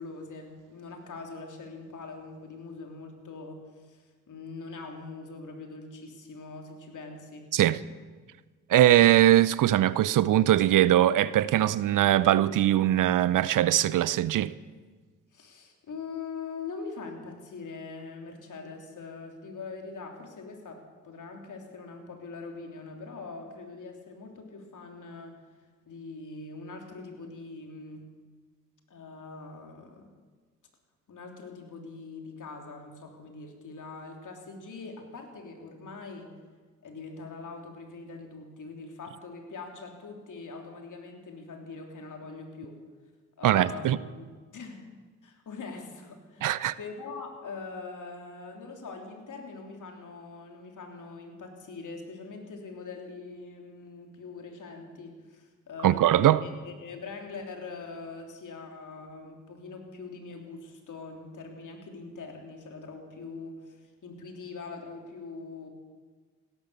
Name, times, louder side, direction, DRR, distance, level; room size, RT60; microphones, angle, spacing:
voice 1, 0.0-7.5 15.3-25.4 25.9-28.1 28.9-30.1 31.1-36.3 36.8-42.8 43.4-44.9 45.2-65.7, left 4 dB, 55° left, 3.3 m, -42 dB
voice 2, 8.7-14.5 43.4-44.0 46.4-46.7 55.8-56.4, right 13 dB, 60° right, 0.6 m, -21 dB
16.5 x 13.0 x 6.9 m
hypercardioid pair, 50°, 36 cm